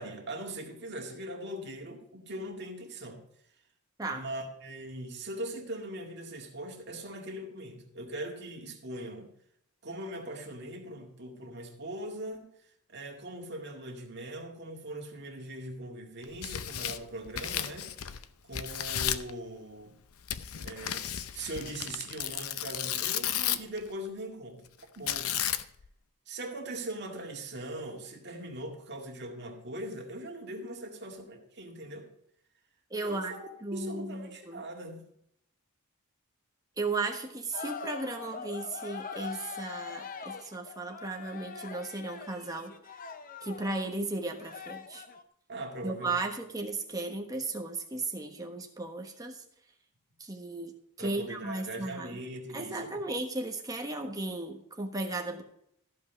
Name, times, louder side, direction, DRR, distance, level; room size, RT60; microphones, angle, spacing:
voice 1, 0.0-3.2 4.1-9.3 9.8-12.5 12.9-17.9 18.5-20.0 20.6-21.1 21.3-24.7 25.0-25.4 26.3-32.1 33.0-35.0 45.5-46.2 51.0-53.0, right 1 dB, 50° right, 1 dB, 2.0 m, -40 dB
Tearing, 16.2-18.2 18.5-19.3 20.3-23.8 25.1-25.9, left 11 dB, 75° left, 0.6 m, -33 dB
voice 2, 32.9-33.3 33.6-34.6 36.8-42.7 43.4-45.0 45.8-49.4 50.2-50.7 51.0-52.2 52.5-55.4, right 2 dB, 15° right, 2 dB, 1.2 m, -35 dB
sound 1, 37.5-43.9 44.3-45.2, left 5 dB, 40° left, 0.7 m, -42 dB
14.0 x 5.5 x 5.8 m, 0.71 s
head